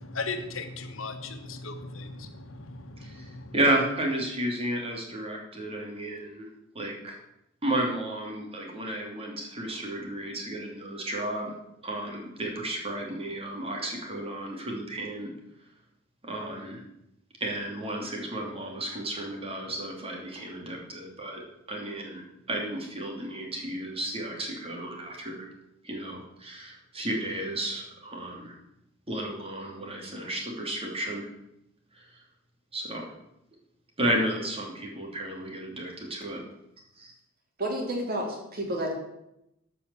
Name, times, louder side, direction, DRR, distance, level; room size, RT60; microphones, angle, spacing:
voice 1, 0.0-3.5, left 3 dB, 80° left, 7 dB, 1.4 m, -37 dB
voice 2, 3.5-6.5 6.7-7.2 7.6-11.5 11.8-15.3 16.2-16.8 17.4-21.4 21.7-22.2 22.5-25.5 25.8-28.5 29.1-31.2 32.7-33.1 34.0-36.4 37.0-37.1, right 1 dB, 30° right, 0 dB, 2.8 m, -32 dB
voice 3, 37.6-38.9, right 1 dB, 50° right, 0 dB, 3.1 m, -30 dB
13.0 x 5.6 x 7.1 m, 0.84 s
head